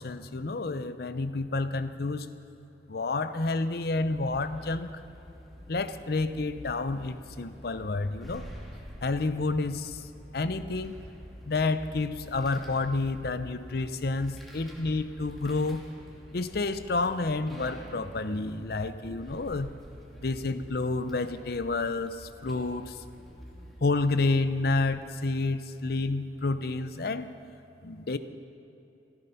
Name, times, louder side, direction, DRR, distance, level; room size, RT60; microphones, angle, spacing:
voice 1, 0.0-2.3 2.9-4.9 5.7-8.5 9.0-10.0 10.3-11.0 11.4-15.8 16.3-19.7 20.2-23.0 23.8-27.3 27.8-28.2, left 3 dB, 60° left, 12 dB, 0.6 m, -29 dB
sound 1, 4.1-23.8, equal, ahead, 2.0 m, -47 dB
15.0 x 13.5 x 5.8 m, 2.9 s
head